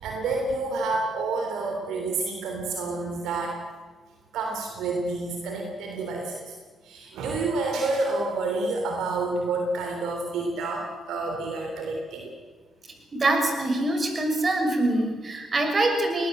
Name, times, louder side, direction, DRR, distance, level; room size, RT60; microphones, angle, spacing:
voice 1, 0.0-3.6 4.3-6.3 6.9-12.3, right 3 dB, 80° right, 2 dB, 3.3 m, -29 dB
voice 2, 13.1-16.3, right 2 dB, 40° right, 4 dB, 6.1 m, -24 dB
20.5 x 19.5 x 7.9 m, 1.4 s
supercardioid pair, 55°, 0 cm